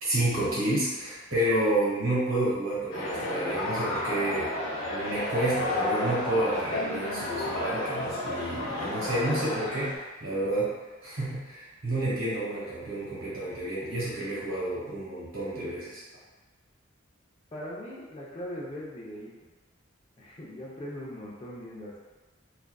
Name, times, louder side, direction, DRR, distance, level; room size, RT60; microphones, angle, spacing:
voice 1, 0.0-4.5 4.8-10.7 11.0-16.0, right 1 dB, 80° right, -8 dB, 1.1 m, -30 dB
sound 1, 2.9-10.0, left 1 dB, 90° left, 0.6 m, -32 dB
voice 2, 17.5-19.3 20.2-22.0, equal, 25° left, -5 dB, 0.4 m, -40 dB
2.4 x 2.3 x 2.2 m, 1.2 s
head